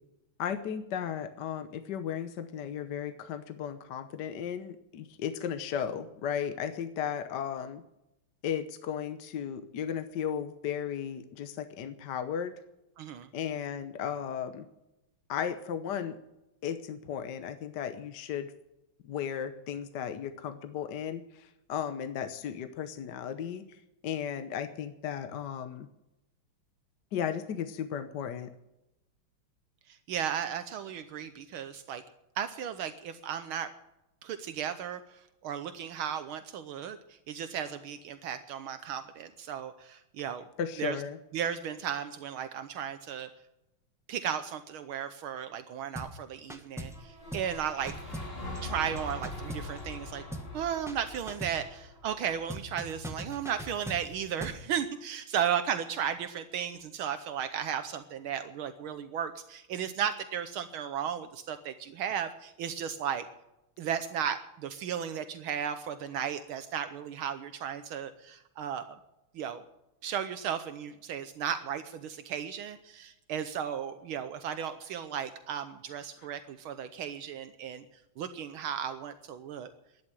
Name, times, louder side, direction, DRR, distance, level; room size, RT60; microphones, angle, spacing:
voice 1, 0.4-7.8 8.4-12.5 13.3-14.7 15.3-16.2 16.6-18.5 19.0-23.7 24.0-25.9 27.1-28.5 40.6-41.2, left 8 dB, 60° left, 10 dB, 1.4 m, -35 dB
voice 2, 13.0-13.3 29.9-32.0 32.4-33.7 34.2-40.4 40.8-41.0 41.3-43.3 44.1-48.0 48.6-50.2 50.5-63.3 63.8-68.9 69.3-69.6 70.0-77.9 78.2-79.7, right 8 dB, 75° right, 10 dB, 1.7 m, -35 dB
sound 1, 46.0-46.2 46.5-47.0 47.3-47.6 47.9-50.0 50.3-50.6 50.9-51.7 52.5-54.7, equal, ahead, 0.9 m, -41 dB
sound 2, 46.9-53.0, left 2 dB, 25° left, 4.3 m, -43 dB
12.0 x 11.0 x 9.0 m, 0.90 s
omnidirectional pair, 2.3 m